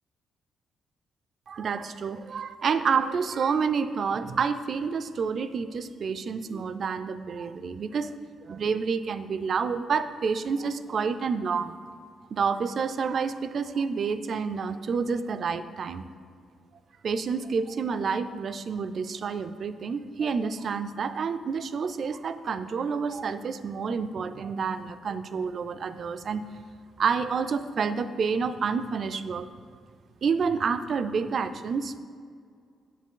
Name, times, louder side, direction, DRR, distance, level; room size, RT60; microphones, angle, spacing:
voice 1, 1.5-8.1 8.4-11.8 12.3-16.1 17.0-26.4 27.0-29.5 30.2-32.0, right 5 dB, 50° right, 12 dB, 0.3 m, -29 dB
7.4 x 7.1 x 3.7 m, 2.2 s
cardioid pair, 110°, 0 cm